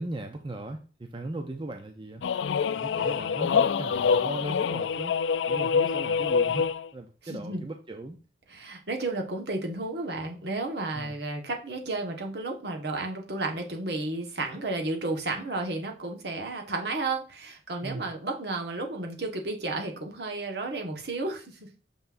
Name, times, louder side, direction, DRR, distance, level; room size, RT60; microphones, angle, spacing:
voice 1, 0.0-2.3 2.7-5.2 5.5-6.7 6.9-8.2 10.9-11.1 17.8-18.1, right 2 dB, 25° right, 5 dB, 0.5 m, -38 dB
sound 1, 2.2-6.9, left 6 dB, 80° left, 0.4 m, -26 dB
voice 2, 7.3-7.6 8.5-21.7, right 2 dB, 60° right, 3 dB, 1.4 m, -32 dB
6.8 x 5.9 x 2.6 m, 0.35 s
head